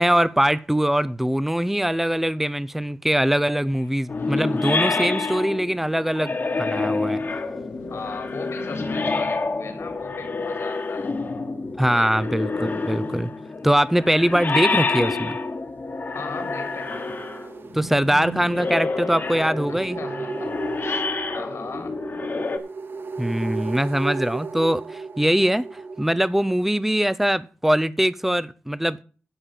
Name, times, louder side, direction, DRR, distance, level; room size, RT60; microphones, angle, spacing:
voice 1, 0.0-7.2 11.8-13.3 13.6-15.4 17.7-20.0 23.2-29.0, equal, 5° right, 0.5 m, -22 dB
sound 1, 4.1-22.6, left 3 dB, 45° left, 1.5 m, -28 dB
voice 2, 4.3-4.8 7.9-11.1 11.9-12.5 16.1-17.1 19.7-22.0, left 4 dB, 75° left, 3.2 m, -38 dB
sound 2, 16.1-26.0, right 4 dB, 50° right, 0.8 m, -35 dB
11.0 x 5.2 x 7.5 m
wide cardioid pair, 115°, 5 cm